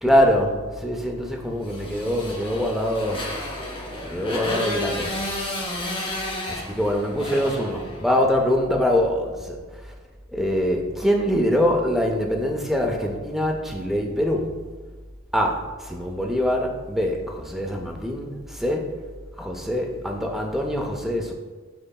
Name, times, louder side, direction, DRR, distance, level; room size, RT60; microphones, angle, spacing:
voice 1, 0.0-3.3 4.0-5.1 6.5-9.9 10.3-14.6 15.3-18.9 19.4-21.3, equal, ahead, 1 dB, 0.4 m, -24 dB
Motorcycle, 1.6-8.3, left 1 dB, 25° left, 0.7 m, -32 dB
5.3 x 3.8 x 2.2 m, 1.4 s
head